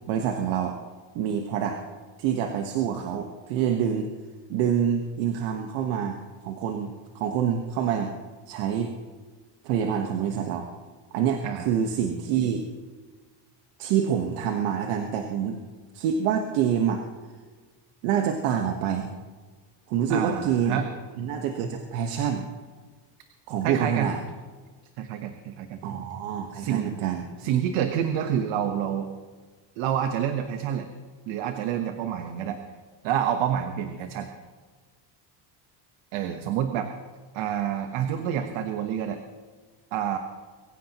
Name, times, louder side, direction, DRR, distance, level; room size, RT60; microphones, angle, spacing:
voice 1, 0.1-0.8 1.1-1.8 2.2-4.1 4.5-6.2 6.4-8.1 8.5-8.9 9.6-10.7 11.1-12.6 13.8-15.6 15.9-17.1 18.0-19.1 19.9-20.8 21.2-22.5 23.5-24.2 25.8-27.2, right 8 dB, 85° right, 3 dB, 1.4 m, -26 dB
voice 2, 20.1-20.9 23.6-24.1 25.0-25.8 26.5-27.0 27.4-29.1 29.8-30.9 31.3-32.6 33.0-34.3 36.1-36.9 37.3-39.2 39.9-40.2, right 9 dB, 70° right, 6 dB, 1.2 m, -28 dB
23.5 x 15.5 x 3.0 m, 1.4 s
cardioid pair, 170°, 48 cm